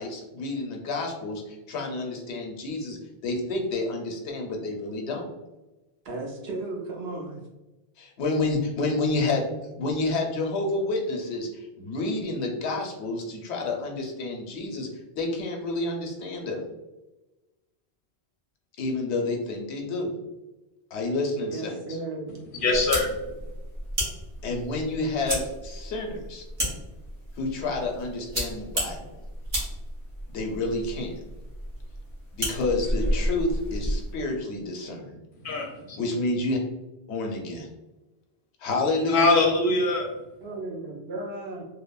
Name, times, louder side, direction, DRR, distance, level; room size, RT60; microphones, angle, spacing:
voice 1, 0.0-5.3 8.0-14.9 15.1-16.6 18.8-20.1 20.9-21.8 24.4-26.4 27.4-29.2 30.3-31.1 32.3-35.2 36.0-36.6 37.1-37.7 38.6-39.5, left 2 dB, 85° left, 1 dB, 0.9 m, -29 dB
voice 2, 6.0-7.4 21.5-22.4 40.4-41.6, right 2 dB, 70° right, -1 dB, 0.8 m, -35 dB
voice 3, 22.5-23.1 35.4-36.0 39.1-40.1, left 2 dB, 60° left, 1 dB, 0.6 m, -23 dB
sound 1, 22.7-34.1, equal, 45° right, 1.0 m, -32 dB
3.1 x 2.0 x 2.2 m, 1.1 s
omnidirectional pair, 1.1 m